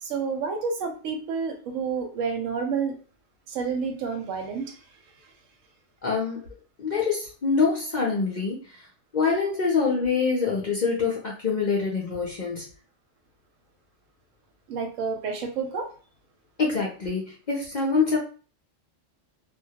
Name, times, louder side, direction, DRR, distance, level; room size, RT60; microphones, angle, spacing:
voice 1, 0.0-3.0 3.5-4.8 14.7-15.9, right 5 dB, 85° right, 4 dB, 1.0 m, -29 dB
voice 2, 6.0-6.4 6.8-8.9 9.1-12.7 16.6-18.2, left 5 dB, 55° left, -3 dB, 0.5 m, -25 dB
2.2 x 2.1 x 2.7 m, 0.38 s
omnidirectional pair, 1.3 m